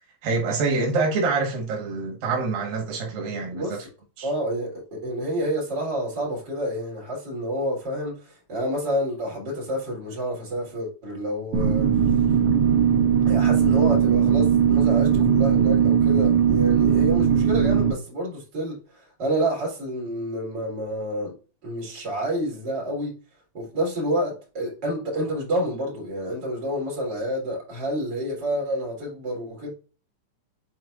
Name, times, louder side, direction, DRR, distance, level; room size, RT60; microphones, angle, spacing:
voice 1, 0.2-3.8 4.2-4.3, right 4 dB, 80° right, 3.3 m, -26 dB
voice 2, 3.5-3.9 4.2-11.9 13.3-21.3 21.6-23.2 23.5-29.7, equal, 30° right, 3.6 m, -29 dB
sound 1, 11.5-17.9, right 8 dB, 60° right, 1.8 m, -19 dB
8.9 x 4.5 x 2.5 m
omnidirectional pair, 4.0 m